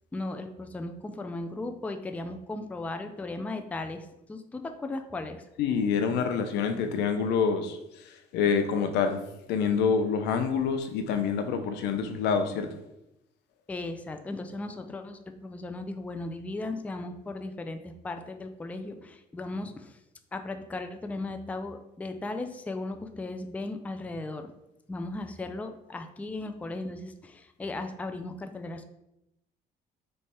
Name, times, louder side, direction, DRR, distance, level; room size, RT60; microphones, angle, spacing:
voice 1, 0.1-5.4 13.7-20.0 20.3-24.5 24.9-28.8, left 2 dB, 10° left, 7 dB, 0.3 m, -36 dB
voice 2, 5.6-9.2 9.5-12.7, left 6 dB, 80° left, 7 dB, 0.6 m, -27 dB
3.2 x 3.2 x 4.2 m, 0.84 s
cardioid pair, 110°, 17 cm